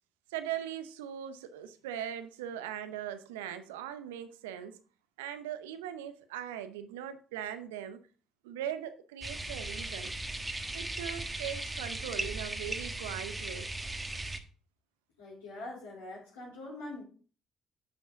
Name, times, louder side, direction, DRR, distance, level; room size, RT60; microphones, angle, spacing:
voice 1, 0.3-4.8 5.2-8.0 8.4-10.1 10.4-13.7, right 10 dB, 80° right, 0.7 m, -40 dB
sound 1, 9.2-14.4, right 2 dB, 15° right, 1.3 m, -37 dB
voice 2, 15.2-17.0, left 2 dB, 80° left, 3.7 m, -43 dB
9.7 x 6.1 x 3.8 m
hypercardioid pair, 45°, 0 cm